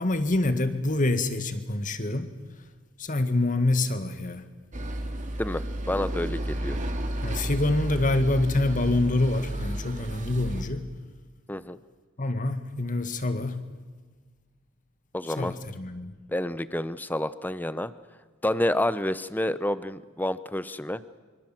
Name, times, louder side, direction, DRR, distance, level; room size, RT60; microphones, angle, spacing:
voice 1, 0.0-2.3 3.0-4.5 7.2-10.9 12.2-13.6 15.4-16.2, left 2 dB, 40° left, 10 dB, 1.9 m, -26 dB
sound 1, 4.7-10.6, right 1 dB, 35° right, 2.3 m, -32 dB
voice 2, 5.4-6.8 11.5-11.8 15.1-15.5 16.3-17.9 18.4-21.0, left 1 dB, 10° left, 15 dB, 0.7 m, -29 dB
25.5 x 25.0 x 7.7 m, 1.4 s
head